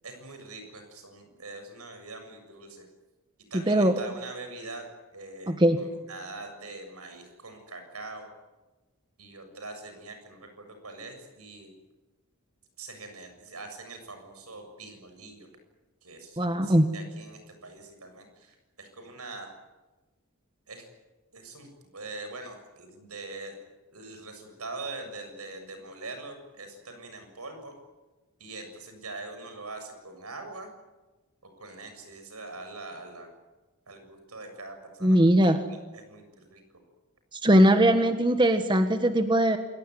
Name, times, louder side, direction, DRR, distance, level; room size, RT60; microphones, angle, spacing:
voice 1, 0.0-2.9 3.5-8.3 9.2-11.7 12.8-15.5 16.0-19.5 20.7-20.9 21.3-21.7 21.9-23.6 23.9-27.7 28.4-30.7 31.6-33.3 33.9-35.2 35.4-36.6, right 3 dB, 85° right, 6 dB, 7.2 m, -43 dB
voice 2, 5.5-5.8 16.4-16.9 35.0-35.6 37.4-39.6, right 1 dB, 20° right, 7 dB, 1.5 m, -20 dB
28.0 x 18.5 x 9.5 m, 1.2 s
head